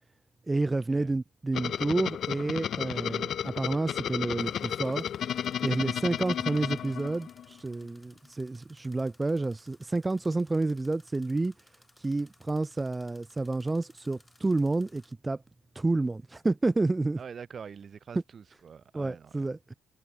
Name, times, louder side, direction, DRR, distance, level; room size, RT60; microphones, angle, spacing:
voice 1, 0.5-5.1 5.6-11.5 12.0-15.4 15.8-17.2 18.9-19.7, right 2 dB, 20° right, 0.4 m, -29 dB
sound 1, 1.5-7.6, left 9 dB, 65° left, 0.6 m, -33 dB
sound 2, 4.4-15.1, left 1 dB, 5° left, 4.5 m, -63 dB
voice 2, 17.2-19.5, right 6 dB, 50° right, 3.8 m, -45 dB
cardioid pair, 90°, 0 cm